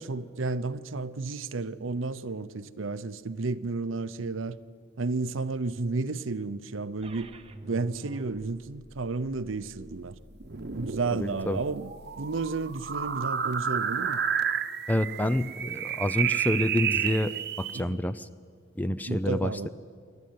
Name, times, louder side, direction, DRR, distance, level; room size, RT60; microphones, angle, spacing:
voice 1, 0.1-4.6 5.0-7.3 7.6-10.2 10.7-14.2 17.7-18.0 19.1-19.7, right 3 dB, 85° right, 0.7 m, -32 dB
sound 1, 7.0-13.0, right 1 dB, 30° right, 0.9 m, -49 dB
sound 2, 10.4-17.8, right 8 dB, 55° right, 1.0 m, -31 dB
voice 2, 11.1-11.6 14.9-17.3 17.6-18.3 18.8-19.7, left 1 dB, 10° left, 0.5 m, -28 dB
26.5 x 12.0 x 9.4 m
head